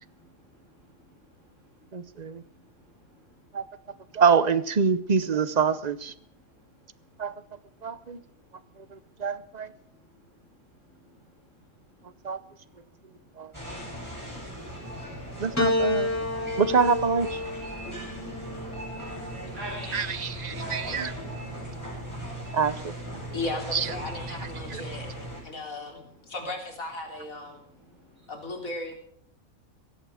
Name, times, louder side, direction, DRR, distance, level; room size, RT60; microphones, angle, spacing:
voice 1, 0.0-4.2 6.2-15.6 17.8-22.6 23.2-23.4 25.4-25.6 26.2-26.4 27.5-28.3, right 1 dB, 60° right, -2 dB, 7.5 m, -51 dB
voice 2, 1.9-2.4 3.5-3.7 4.1-6.1 7.2-7.3 7.8-8.2 8.8-9.7 12.2-12.4 13.4-13.5 15.4-16.1 16.6-17.4 19.9-21.1 22.5-22.9 23.7-23.9 24.7-24.8, right 6 dB, 40° right, 16 dB, 0.7 m, -25 dB
sound 1, 13.5-25.4, equal, 10° right, 7.7 m, -38 dB
Piano, 15.6-20.1 21.1-21.8, left 1 dB, 10° left, 1.7 m, -30 dB
voice 3, 23.3-25.1 25.4-27.6 28.3-28.9, left 2 dB, 70° left, 2 dB, 4.1 m, -36 dB
17.0 x 16.0 x 4.9 m, 0.64 s
omnidirectional pair, 1.5 m